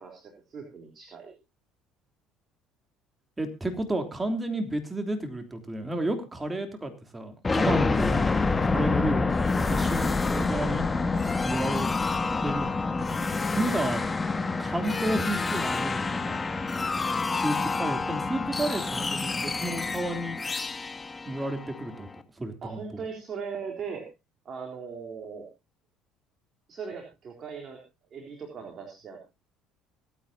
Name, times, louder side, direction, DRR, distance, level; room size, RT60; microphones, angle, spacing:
voice 1, 0.0-1.3 7.9-8.0 16.8-16.9 22.6-24.1 24.4-25.5 26.7-27.8 28.1-29.3, right 5 dB, 45° right, 2 dB, 3.9 m, -39 dB
voice 2, 3.4-8.3 8.6-10.8 11.4-11.9 12.4-12.7 13.5-14.0 14.6-16.4 17.3-20.4 21.2-22.1 22.4-22.8, right 1 dB, 20° right, 7 dB, 3.4 m, -31 dB
sound 1, 7.4-22.1, left 3 dB, 25° left, 1.6 m, -28 dB
25.5 x 9.2 x 2.8 m, 0.26 s
supercardioid pair, 75°, 0 cm